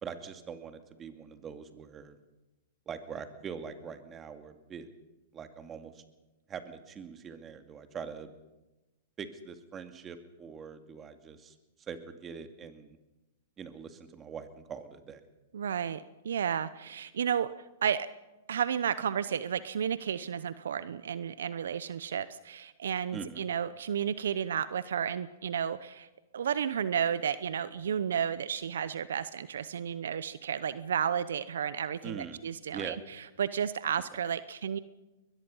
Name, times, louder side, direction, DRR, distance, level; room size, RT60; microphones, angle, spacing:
voice 1, 0.0-2.2 2.9-4.9 5.3-6.0 6.5-8.3 9.2-11.5 11.9-13.0 13.6-15.2 23.1-23.4 32.0-32.4 32.7-33.0, right 6 dB, 25° right, 7 dB, 2.3 m, -43 dB
voice 2, 15.5-17.5 17.8-18.1 18.5-26.1 26.3-33.0 33.4-34.8, right 8 dB, 75° right, 15 dB, 0.8 m, -32 dB
22.0 x 21.5 x 5.5 m, 1.0 s
hypercardioid pair, 120°, 0 cm